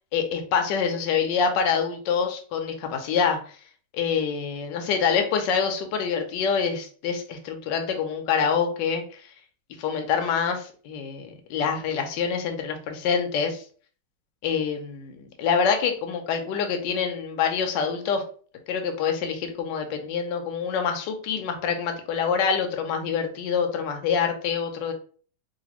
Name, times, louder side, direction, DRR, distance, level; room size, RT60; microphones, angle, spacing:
voice 1, 0.1-3.4 3.9-9.0 9.8-13.6 14.4-18.2 18.7-24.9, left 6 dB, 70° left, 5 dB, 1.2 m, -26 dB
4.0 x 2.5 x 2.9 m, 0.43 s
omnidirectional pair, 2.3 m